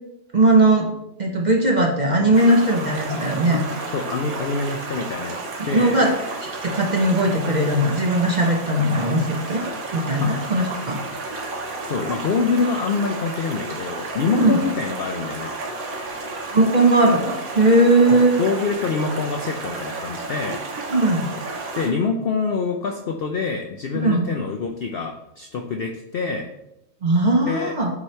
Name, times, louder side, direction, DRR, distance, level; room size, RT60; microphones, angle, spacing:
voice 1, 0.3-0.9 1.2-3.6 5.6-6.1 6.4-9.6 9.9-11.0 14.3-14.6 16.5-18.4 20.9-21.3 24.0-24.3 27.0-27.9, right 1 dB, 40° right, 0 dB, 0.6 m, -18 dB
Stream, 2.3-21.9, right 3 dB, 70° right, 1.5 m, -32 dB
voice 2, 3.9-5.4 5.7-6.0 10.2-10.3 11.8-15.5 18.1-20.6 21.8-26.5 27.5-27.7, left 4 dB, 90° left, 3 dB, 0.5 m, -25 dB
8.2 x 3.1 x 4.3 m, 0.88 s
omnidirectional pair, 1.6 m